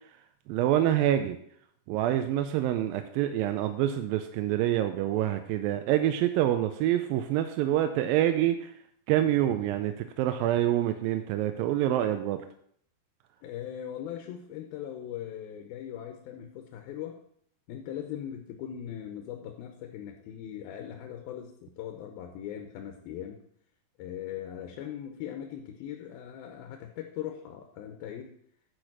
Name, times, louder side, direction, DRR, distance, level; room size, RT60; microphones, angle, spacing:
voice 1, 0.5-1.4 1.9-8.7 9.1-12.4, right 12 dB, 85° right, 8 dB, 2.3 m, -26 dB
voice 2, 13.4-17.2 17.7-23.4 24.0-28.3, left 10 dB, 85° left, 4 dB, 2.7 m, -40 dB
10.5 x 5.0 x 6.0 m, 0.65 s
omnidirectional pair, 4.2 m